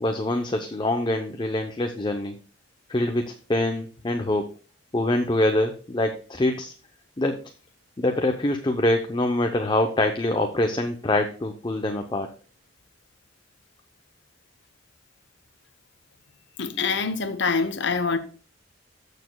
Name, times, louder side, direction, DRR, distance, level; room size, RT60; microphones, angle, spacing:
voice 1, 0.0-2.4 2.9-4.5 4.9-6.7 7.2-7.4 8.0-12.3, left 1 dB, 25° left, 0.7 m, -24 dB
voice 2, 16.6-18.2, left 4 dB, 65° left, 0.9 m, -25 dB
14.5 x 6.7 x 2.3 m
head